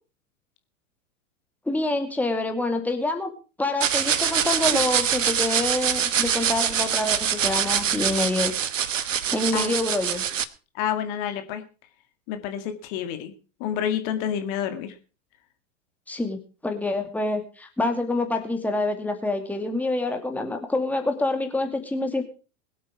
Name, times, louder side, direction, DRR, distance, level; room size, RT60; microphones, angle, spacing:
voice 1, 1.7-3.3 3.6-8.5 9.3-10.2 16.1-22.2, left 2 dB, 5° left, 5 dB, 2.3 m, -26 dB
sound 1, 3.8-10.4, right 8 dB, 70° right, 1.2 m, -24 dB
voice 2, 10.7-11.6 12.3-13.3 13.6-15.0, left 9 dB, 40° left, 8 dB, 2.1 m, -28 dB
21.5 x 8.6 x 4.8 m, 0.35 s
figure-of-eight pair, 95°, 40 cm